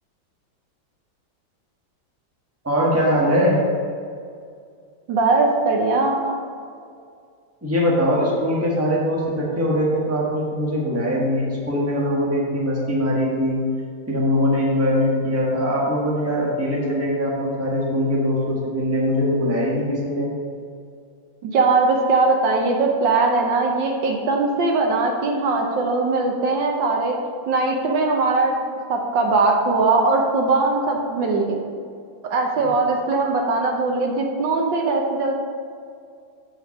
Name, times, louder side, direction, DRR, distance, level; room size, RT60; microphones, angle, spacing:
voice 1, 2.6-3.6 7.6-13.6 14.1-20.3, equal, 10° right, -4 dB, 1.2 m, -21 dB
voice 2, 5.1-6.4 21.4-27.1 27.5-28.5 28.9-31.6 32.2-35.3, right 3 dB, 70° right, 1 dB, 1.5 m, -20 dB
7.3 x 5.1 x 5.8 m, 2.3 s
omnidirectional pair, 2.2 m